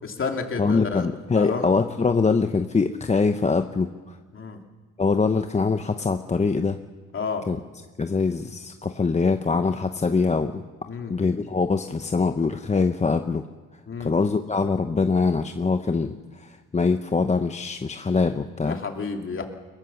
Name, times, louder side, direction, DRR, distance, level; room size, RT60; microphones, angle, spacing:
voice 1, 0.0-1.1 1.4-1.7 4.3-4.6 7.1-7.4 10.9-11.2 13.9-14.1 18.6-19.4, left 5 dB, 45° left, 3 dB, 2.9 m, -30 dB
voice 2, 0.6-4.2 5.0-6.8 7.5-7.6 8.0-10.6 11.1-13.4 14.0-18.8, left 4 dB, 25° left, 7 dB, 0.9 m, -23 dB
22.0 x 18.0 x 7.1 m, 1.4 s
cardioid pair, 90°, 30 cm